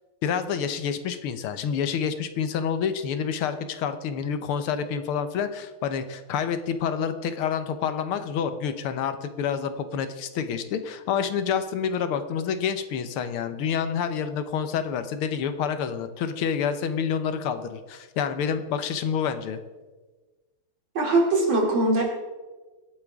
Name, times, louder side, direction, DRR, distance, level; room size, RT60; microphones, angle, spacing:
voice 1, 0.2-19.6, left 7 dB, 80° left, 10 dB, 1.8 m, -28 dB
voice 2, 21.0-22.0, right 2 dB, 65° right, -1 dB, 3.7 m, -21 dB
23.0 x 8.6 x 3.6 m, 1.3 s
omnidirectional pair, 2.3 m